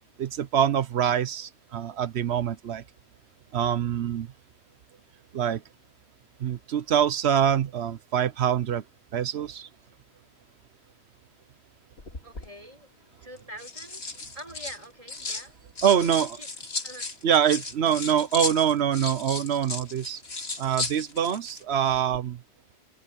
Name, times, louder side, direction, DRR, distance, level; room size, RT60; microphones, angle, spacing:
voice 1, 0.2-2.8 3.5-4.3 5.3-5.6 6.4-8.8 9.1-9.7 15.8-16.4 17.2-20.2 20.6-22.4, right 9 dB, 75° right, 1.1 m, -25 dB
sound 1, 12.0-12.5 13.4-15.5 15.8-21.6 21.9-22.2, left 3 dB, 65° left, 2.5 m, -35 dB
voice 2, 12.2-14.0 14.3-15.5 16.0-16.1 16.4-16.5 16.8-17.0, equal, 30° right, 4.6 m, -45 dB
open air
omnidirectional pair, 1.1 m